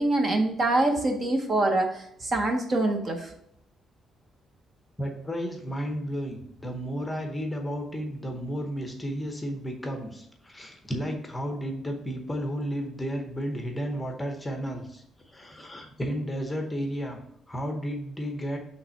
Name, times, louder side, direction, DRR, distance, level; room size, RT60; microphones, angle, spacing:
voice 1, 0.0-3.3, right 2 dB, 30° right, 4 dB, 0.7 m, -25 dB
voice 2, 5.0-15.0 15.3-17.2 17.5-18.6, equal, 10° left, 3 dB, 0.8 m, -33 dB
5.5 x 3.2 x 5.6 m, 0.72 s
cardioid pair, 165°, 0 cm